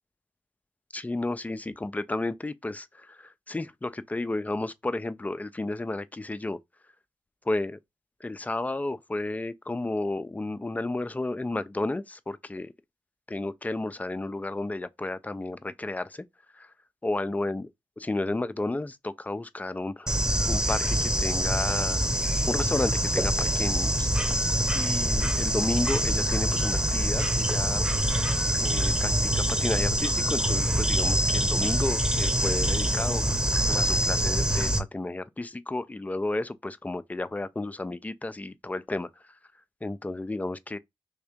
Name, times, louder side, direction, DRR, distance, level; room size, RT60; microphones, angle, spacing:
voice 1, 0.9-6.6 7.5-7.8 8.2-12.7 13.3-16.2 16.6-16.7 17.0-17.7 18.0-20.2 20.5-22.0 22.5-24.1 24.7-27.8 28.6-33.4 33.7-39.1 39.8-40.8, left 2 dB, 15° left, 0.5 m, -32 dB
Bird / Insect, 20.1-34.8, equal, 10° right, 0.9 m, -25 dB
sound 1, 27.9-34.9, right 4 dB, 45° right, 1.0 m, -38 dB
3.5 x 2.8 x 3.5 m
supercardioid pair, 45°, 9 cm